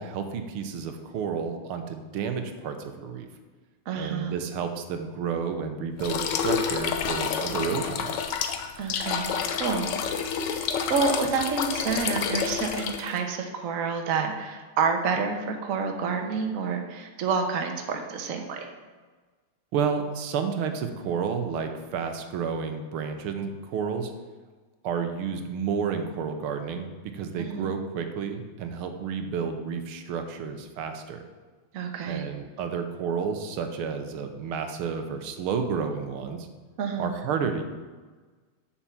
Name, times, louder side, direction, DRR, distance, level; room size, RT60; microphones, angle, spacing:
voice 1, 0.0-3.3 4.0-8.2 19.7-24.1 24.8-31.3 32.1-36.5 37.0-37.6, right 6 dB, 90° right, 6 dB, 1.7 m, -31 dB
voice 2, 3.9-4.4 8.8-9.3 9.6-9.9 10.9-18.7 27.4-27.7 31.7-32.2 36.8-37.1, right 5 dB, 50° right, 3 dB, 1.2 m, -28 dB
sound 1, 6.0-13.2, left 7 dB, 65° left, 1.2 m, -29 dB
7.1 x 5.7 x 7.2 m, 1.4 s
omnidirectional pair, 2.3 m